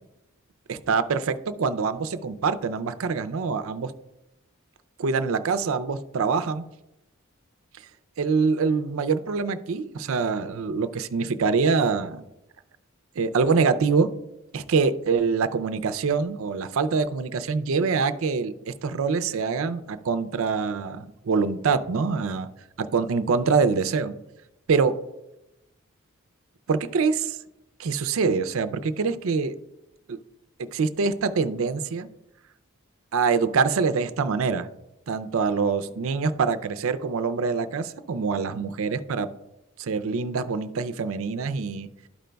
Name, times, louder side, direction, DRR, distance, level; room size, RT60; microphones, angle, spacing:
voice 1, 0.7-3.9 5.0-6.6 8.2-12.2 13.2-14.1 14.5-22.5 22.8-24.1 24.7-24.9 26.7-27.4 27.8-29.5 30.1-30.2 30.6-32.1 33.1-34.7 35.1-39.3 39.8-41.9, right 5 dB, 65° right, 11 dB, 0.4 m, -25 dB
12.5 x 5.1 x 2.2 m, 0.92 s
head